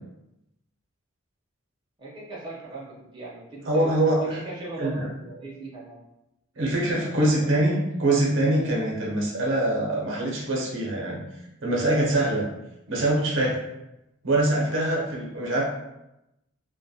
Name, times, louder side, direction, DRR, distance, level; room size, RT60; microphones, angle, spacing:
voice 1, 2.0-3.9 4.2-6.0 6.9-7.8, right 3 dB, 25° right, -6 dB, 0.6 m, -39 dB
voice 2, 3.7-4.2 4.8-5.1 6.6-11.2 11.6-12.5 12.9-13.6 14.2-15.6, right 1 dB, 70° right, -3 dB, 0.6 m, -24 dB
2.2 x 2.1 x 2.6 m, 0.90 s
head